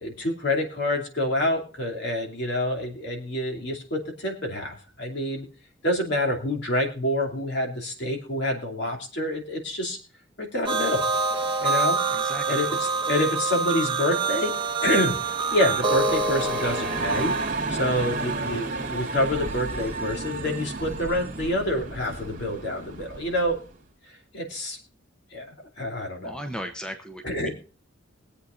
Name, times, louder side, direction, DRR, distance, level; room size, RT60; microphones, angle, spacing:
voice 1, 0.0-5.4 5.8-10.0 10.4-11.0 11.6-12.0 12.5-14.5 14.8-15.1 15.5-17.3 17.7-23.6 24.1-24.8 25.3-26.3 27.2-27.5, left 1 dB, 55° left, 1 dB, 2.7 m, -27 dB
sound 1, 10.6-17.5, right 4 dB, 25° right, 1.0 m, -26 dB
voice 2, 12.1-12.5 26.2-27.5, equal, 5° left, 6 dB, 0.7 m, -36 dB
sound 2, 15.1-23.7, right 3 dB, 40° right, 2.3 m, -32 dB
23.0 x 8.2 x 2.5 m, 0.37 s
head